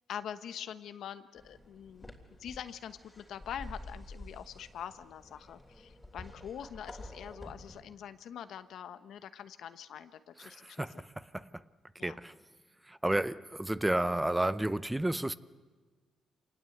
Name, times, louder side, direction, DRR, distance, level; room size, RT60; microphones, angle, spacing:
voice 1, 0.1-2.1 2.4-11.0 12.0-12.2, left 9 dB, 70° left, 1.1 m, -44 dB
sound 1, 1.4-7.8, left 1 dB, 15° left, 3.2 m, -49 dB
voice 2, 10.4-11.5 12.0-12.3 12.9-15.3, right 1 dB, 10° right, 0.7 m, -32 dB
27.0 x 19.5 x 8.0 m
cardioid pair, 90°, 0 cm